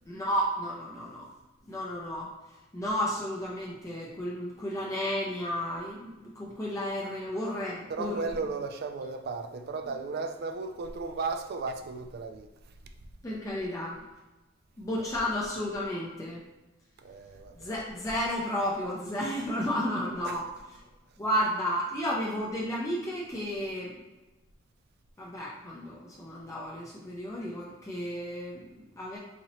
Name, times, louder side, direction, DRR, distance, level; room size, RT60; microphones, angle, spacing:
voice 1, 0.1-1.3 1.7-2.3 2.7-8.3 13.2-14.0 14.8-16.4 17.6-20.5 21.2-23.9 25.2-29.2, equal, 15° left, -5 dB, 0.4 m, -32 dB
voice 2, 7.9-12.7 15.0-15.2 17.0-17.7 20.2-20.4, right 4 dB, 55° right, 7 dB, 0.4 m, -35 dB
4.1 x 2.8 x 2.9 m, 1.1 s
head